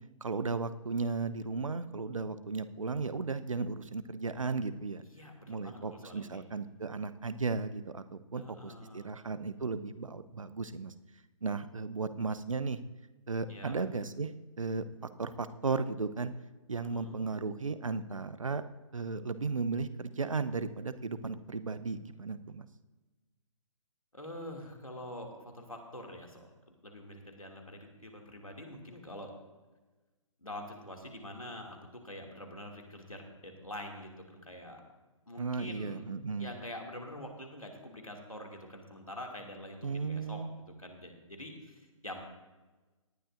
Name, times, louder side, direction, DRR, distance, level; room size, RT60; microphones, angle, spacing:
voice 1, 0.2-5.0 5.5-8.0 8.3-10.9 11.4-12.8 13.3-14.8 15.2-16.3 16.7-18.6 18.9-22.7 35.4-36.5 39.8-40.5, right 4 dB, 70° right, 12 dB, 0.8 m, -35 dB
voice 2, 5.0-6.4 8.4-9.1 13.5-13.7 16.8-17.2 24.1-26.5 26.8-29.3 30.4-34.8 35.3-42.2, left 1 dB, 85° left, 1 dB, 2.5 m, -46 dB
18.5 x 11.0 x 2.6 m, 1.2 s
figure-of-eight pair, 130°, 17 cm